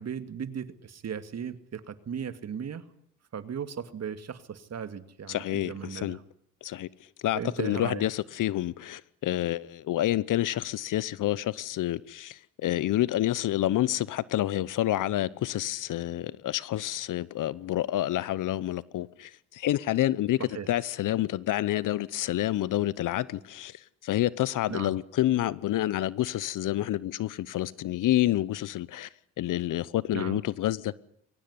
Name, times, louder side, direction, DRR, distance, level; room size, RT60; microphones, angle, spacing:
voice 1, 0.0-2.8 3.3-6.2 7.3-8.1 20.4-20.7 24.7-24.9 30.1-30.4, right 7 dB, 50° right, 2.2 m, -37 dB
voice 2, 5.3-6.2 6.6-6.9 7.2-29.1 29.4-31.0, left 14 dB, 70° left, 1.0 m, -28 dB
23.0 x 18.5 x 9.8 m
supercardioid pair, 65°, 33 cm